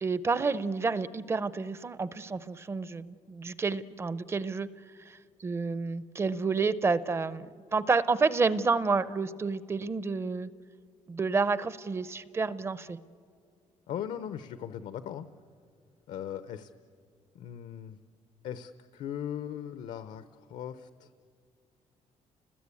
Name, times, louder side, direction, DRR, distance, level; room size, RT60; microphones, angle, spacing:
voice 1, 0.0-4.7 5.1-10.5 11.1-13.0, right 4 dB, 20° right, 16 dB, 0.6 m, -29 dB
voice 2, 13.9-15.3 16.1-16.7 17.3-18.0 18.4-21.1, left 9 dB, 75° left, 11 dB, 0.8 m, -39 dB
30.0 x 20.0 x 8.4 m, 2.2 s
cardioid pair, 175°, 12 cm